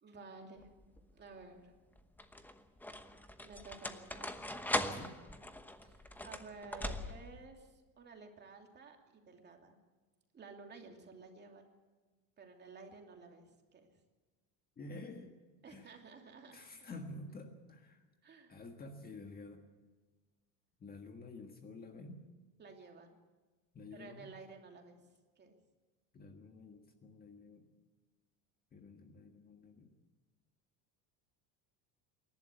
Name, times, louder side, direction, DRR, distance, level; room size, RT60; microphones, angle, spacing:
voice 1, 0.0-0.7 1.1-1.7 3.4-4.3 5.8-9.8 10.3-11.7 12.4-13.4 13.7-14.0 15.6-16.9 18.2-18.6 22.6-23.2 23.9-25.1 25.4-25.5, right 4 dB, 25° right, 3 dB, 2.8 m, -53 dB
sound 1, 0.6-1.1 2.0-7.5, left 1 dB, 5° left, 1.0 m, -41 dB
voice 2, 14.8-15.4 15.7-15.9 16.5-18.0 18.5-19.6 20.8-22.2 23.7-24.3 26.1-27.7 28.7-29.9, left 2 dB, 25° left, 4 dB, 1.6 m, -50 dB
26.5 x 12.0 x 8.3 m, 1.3 s
cardioid pair, 145°, 38 cm